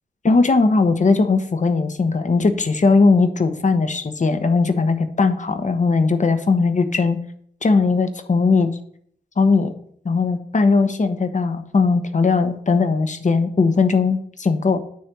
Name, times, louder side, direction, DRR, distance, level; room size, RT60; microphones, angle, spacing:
voice 1, 0.2-7.2 7.6-8.7 9.4-9.7 10.0-14.8, left 4 dB, 40° left, 9 dB, 0.9 m, -18 dB
9.4 x 3.3 x 6.0 m, 0.63 s
cardioid pair, 60°, 19 cm